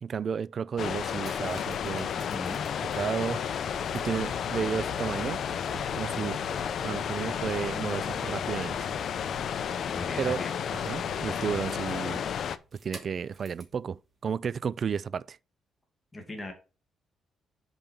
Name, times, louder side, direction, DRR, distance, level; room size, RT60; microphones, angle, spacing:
voice 1, 0.0-2.1 2.9-5.4 5.7-6.4 6.8-8.9 10.2-10.4 10.7-12.3 12.8-14.0 14.2-15.4, right 7 dB, 50° right, 0.4 m, -32 dB
sound 1, 0.8-12.6, left 8 dB, 60° left, 0.6 m, -32 dB
sound 2, 1.0-13.8 14.5-14.6, right 2 dB, 30° right, 2.4 m, -48 dB
voice 2, 2.2-2.6 9.8-10.5 16.1-16.5, left 2 dB, 15° left, 1.9 m, -38 dB
5.6 x 5.2 x 4.5 m
cardioid pair, 90°, 0 cm